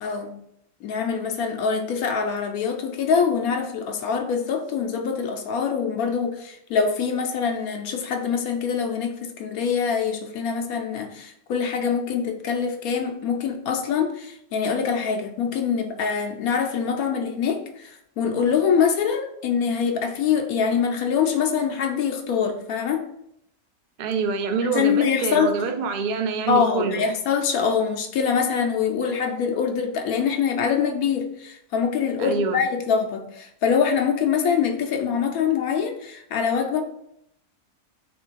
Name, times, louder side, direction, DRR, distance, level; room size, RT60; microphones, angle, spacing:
voice 1, 0.0-0.4 0.8-23.0 24.7-25.5 26.5-36.8, left 6 dB, 85° left, 4 dB, 1.2 m, -24 dB
voice 2, 24.0-27.1 32.2-32.6, right 5 dB, 80° right, 5 dB, 0.4 m, -26 dB
3.3 x 3.2 x 4.5 m, 0.74 s
omnidirectional pair, 1.5 m